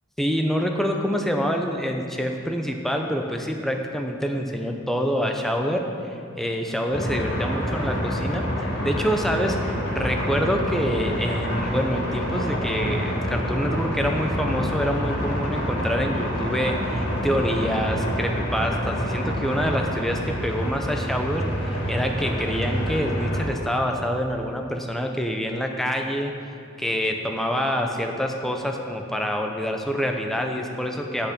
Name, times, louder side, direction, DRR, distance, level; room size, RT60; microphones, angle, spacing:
voice 1, 0.2-26.3 26.8-31.3, equal, ahead, 2 dB, 0.6 m, -26 dB
sound 1, 6.9-23.4, equal, 60° left, 2.2 m, -27 dB
8.2 x 6.5 x 5.9 m, 2.6 s
head